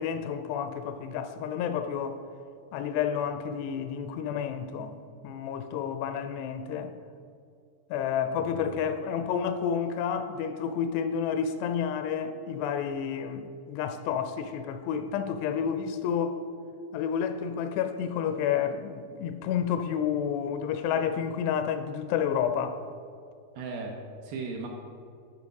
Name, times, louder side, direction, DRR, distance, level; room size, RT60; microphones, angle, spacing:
voice 1, 0.0-2.2 2.7-5.0 5.2-7.0 7.9-16.4 16.9-22.8, left 8 dB, 85° left, 2.5 m, -30 dB
voice 2, 23.6-24.7, right 4 dB, 75° right, 2.3 m, -37 dB
9.7 x 5.3 x 5.2 m
omnidirectional pair, 4.9 m